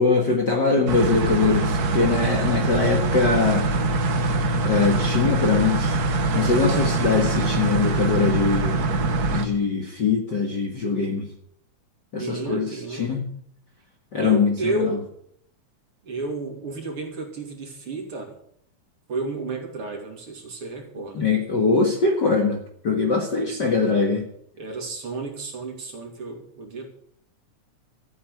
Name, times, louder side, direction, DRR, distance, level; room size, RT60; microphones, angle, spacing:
voice 1, 0.0-3.7 4.6-6.0 6.3-8.8 9.3-11.3 12.1-13.3 14.1-14.9 21.1-22.6 22.8-24.2, left 4 dB, 40° left, 1 dB, 1.9 m, -22 dB
sound 1, 0.9-9.4, right 2 dB, 70° right, 0.9 m, -23 dB
voice 2, 12.2-13.1 14.2-15.0 16.0-18.3 19.1-21.3 23.4-23.9 24.6-26.9, right 3 dB, 45° right, 1 dB, 3.6 m, -32 dB
14.5 x 8.7 x 8.1 m, 0.67 s
omnidirectional pair, 3.6 m